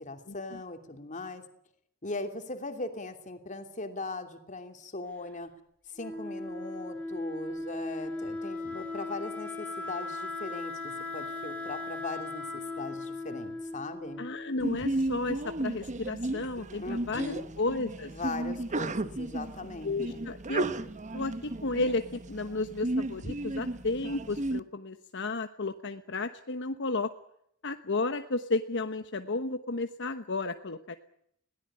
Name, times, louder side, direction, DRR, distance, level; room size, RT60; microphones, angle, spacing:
voice 1, 0.0-1.4 2.0-5.5 5.9-14.2 16.8-17.5 18.1-20.3, left 2 dB, 35° left, 6 dB, 2.9 m, -39 dB
Wind instrument woodwind instrument, 6.0-14.7, left 2 dB, 5° left, 4.5 m, -38 dB
voice 2, 14.2-18.1 19.8-27.1 27.6-31.0, left 3 dB, 60° left, 8 dB, 1.1 m, -33 dB
Sneeze, 14.6-24.6, right 2 dB, 35° right, 1.0 m, -34 dB
21.5 x 17.5 x 9.9 m, 0.74 s
head